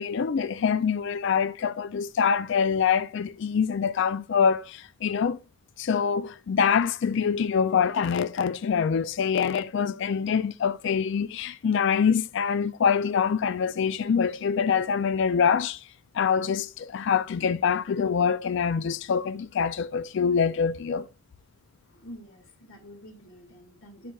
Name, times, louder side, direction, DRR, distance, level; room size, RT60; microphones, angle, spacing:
voice 1, 0.0-5.4 5.8-15.8 16.1-21.1, left 6 dB, 60° left, 0.4 m, -25 dB
voice 2, 21.9-24.1, equal, 85° left, 2.1 m, -47 dB
11.0 x 5.6 x 2.4 m
head